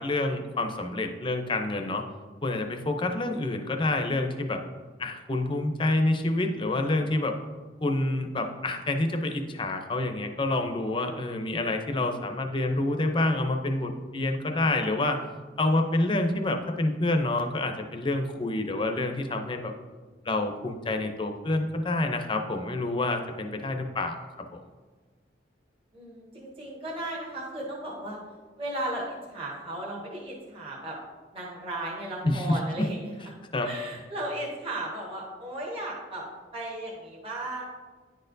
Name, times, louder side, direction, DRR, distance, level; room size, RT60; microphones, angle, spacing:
voice 1, 0.0-2.0 2.4-4.6 5.0-7.4 7.8-15.2 15.6-19.7 20.3-24.2 32.2-32.4 33.5-33.7, left 2 dB, 30° left, 5 dB, 0.5 m, -28 dB
voice 2, 25.9-28.2 28.6-31.0 31.3-33.2 33.6-36.2 36.5-37.7, right 1 dB, 30° right, -4 dB, 1.1 m, -35 dB
10.0 x 4.3 x 2.6 m, 1.4 s
head